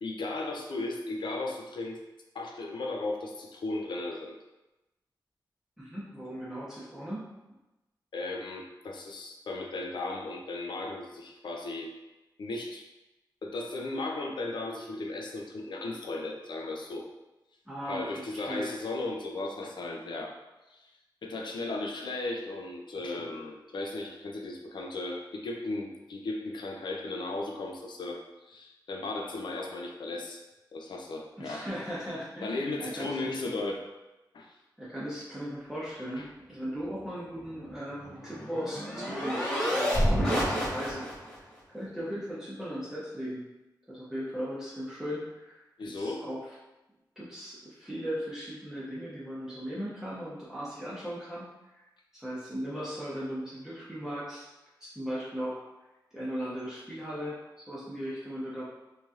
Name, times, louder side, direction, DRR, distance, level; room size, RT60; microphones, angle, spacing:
voice 1, 0.0-2.0 2.3-4.3 8.1-11.9 12.4-12.9 13.4-17.1 17.9-20.4 20.7-20.8 21.2-30.4 30.7-31.7 32.4-33.8 34.3-34.5 36.2-36.3 45.8-46.3, left 2 dB, 75° left, 1 dB, 0.4 m, -36 dB
voice 2, 5.8-7.2 17.7-18.7 31.4-33.3 34.8-41.0 41.7-43.5 43.9-45.6 45.9-46.4 47.2-51.4 52.1-54.5 54.8-55.6 56.1-58.6, equal, 5° right, -10 dB, 0.7 m, -37 dB
sound 1, 37.7-41.3, equal, 10° left, 1.5 m, -29 dB
3.1 x 2.7 x 2.4 m, 1.0 s
wide cardioid pair, 75°, 8 cm